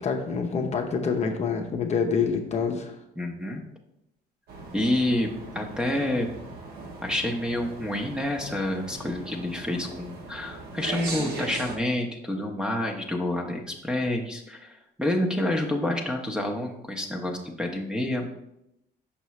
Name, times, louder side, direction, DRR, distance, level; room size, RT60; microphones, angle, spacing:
voice 1, 0.0-2.9, left 5 dB, 40° left, 3 dB, 0.7 m, -26 dB
voice 2, 3.2-3.6 4.7-6.3 7.0-18.3, left 1 dB, 5° right, 3 dB, 0.8 m, -28 dB
sound 1, 4.5-11.8, right 3 dB, 70° right, 1.1 m, -39 dB
5.8 x 5.4 x 3.1 m, 0.83 s
cardioid pair, 110°, 17 cm